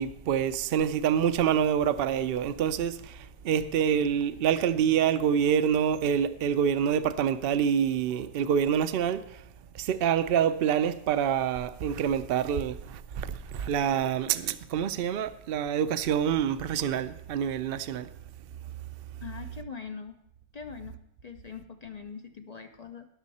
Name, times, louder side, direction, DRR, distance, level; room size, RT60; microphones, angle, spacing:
voice 1, 0.0-9.4 9.7-18.1, right 8 dB, 65° right, 0.6 m, -26 dB
voice 2, 19.2-20.2 20.5-23.0, left 6 dB, 60° left, 0.4 m, -42 dB
18.5 x 6.3 x 4.2 m
omnidirectional pair, 1.6 m